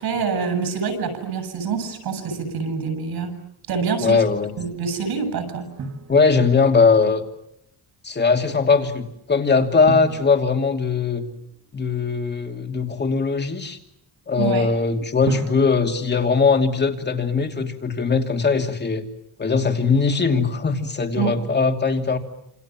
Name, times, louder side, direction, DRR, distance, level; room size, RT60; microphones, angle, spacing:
voice 1, 0.0-3.3 3.7-4.2 4.6-5.7 14.4-14.7 21.2-21.3, right 5 dB, 70° right, 9 dB, 7.9 m, -26 dB
voice 2, 4.0-4.5 6.1-7.2 8.0-11.2 11.7-13.8 14.3-19.0 19.4-22.2, left 4 dB, 25° left, 5 dB, 2.8 m, -20 dB
Drum, 5.8-6.9 9.9-11.7 15.2-17.2, right 3 dB, 45° right, 3.4 m, -34 dB
28.0 x 28.0 x 7.5 m, 0.79 s
cardioid pair, 155°, 39 cm